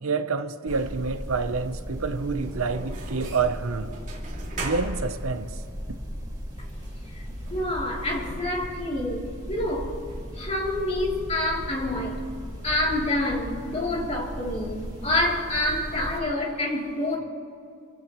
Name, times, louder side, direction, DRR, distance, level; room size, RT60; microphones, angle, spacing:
voice 1, 0.0-3.9 4.6-5.5, right 4 dB, 70° right, 0.8 m, -28 dB
sound 1, 0.7-16.2, equal, 15° right, 2.2 m, -37 dB
sound 2, 2.1-14.3, right 1 dB, 35° right, 2.9 m, -42 dB
voice 2, 7.1-9.9 10.3-12.2 12.6-17.2, left 1 dB, 30° left, 3.1 m, -27 dB
27.5 x 16.0 x 3.1 m
head